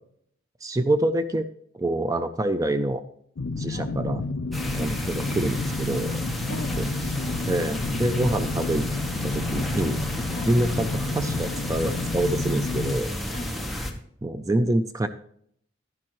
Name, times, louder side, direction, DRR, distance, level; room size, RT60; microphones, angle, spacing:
voice 1, 0.6-1.5 1.7-3.0 3.6-4.2 4.7-7.1 7.5-8.9 9.2-10.0 10.5-13.1 14.2-15.1, right 1 dB, 15° right, 10 dB, 0.4 m, -26 dB
sound 1, 3.4-12.9, left 3 dB, 65° left, 0.5 m, -30 dB
voice 2, 3.7-4.0 4.9-5.1 6.1-6.2 6.5-7.4 10.3-10.6 13.3-13.8, left 1 dB, 45° left, 5 dB, 0.9 m, -40 dB
sound 2, 4.5-13.9, left 1 dB, ahead, 0.9 m, -32 dB
11.0 x 10.5 x 3.0 m, 0.67 s
head